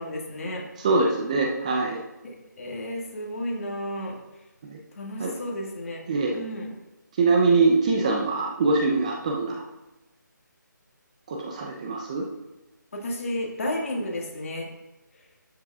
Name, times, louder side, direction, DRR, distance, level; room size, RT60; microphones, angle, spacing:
voice 1, 0.0-0.7 2.2-4.2 5.0-6.0 6.3-6.7 12.9-14.7, left 1 dB, 45° left, -1 dB, 2.0 m, -32 dB
voice 2, 0.8-2.0 4.7-4.8 5.2-5.3 6.1-6.4 7.2-9.6 11.3-12.2, right 3 dB, 20° right, 0 dB, 0.7 m, -23 dB
12.0 x 7.5 x 2.4 m, 1.1 s
figure-of-eight pair, 165°, 11 cm